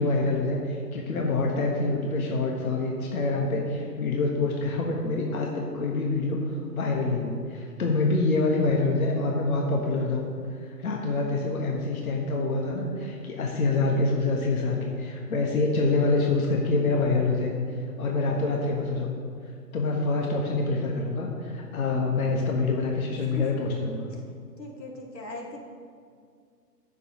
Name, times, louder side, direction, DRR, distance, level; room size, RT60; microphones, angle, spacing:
voice 1, 0.0-10.3 10.6-17.5 18.0-19.1 19.7-24.1, left 3 dB, 60° left, 0 dB, 1.4 m, -26 dB
voice 2, 23.3-23.7 24.1-24.2 24.6-25.6, left 1 dB, 85° left, -1 dB, 2.1 m, -39 dB
16.5 x 6.8 x 3.0 m, 2.2 s
figure-of-eight pair, 140°, 49 cm